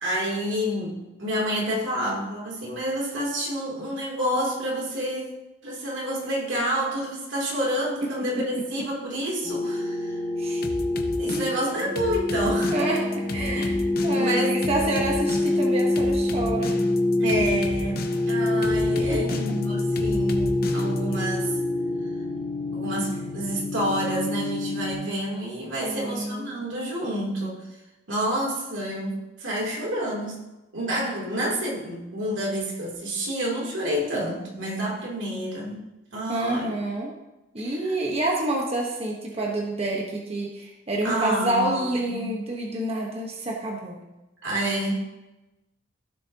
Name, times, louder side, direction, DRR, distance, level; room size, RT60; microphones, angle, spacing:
voice 1, 0.0-5.3 5.6-10.2 11.2-12.7 13.5-13.8 14.2-14.6 17.2-21.6 22.7-27.6 28.1-30.4 30.7-35.8 36.1-36.7 37.6-37.8 41.0-42.3 44.4-45.0, equal, 85° right, -4 dB, 3.1 m, -29 dB
sound 1, 9.4-24.9, left 2 dB, 20° left, 1.6 m, -26 dB
sound 2, 10.6-21.2, left 2 dB, 55° left, 0.8 m, -34 dB
voice 2, 12.7-13.7 14.0-16.7 19.0-19.2 25.8-26.5 36.3-37.1 37.5-44.0, right 1 dB, 35° right, -1 dB, 1.2 m, -28 dB
15.5 x 6.4 x 2.9 m, 1.0 s
head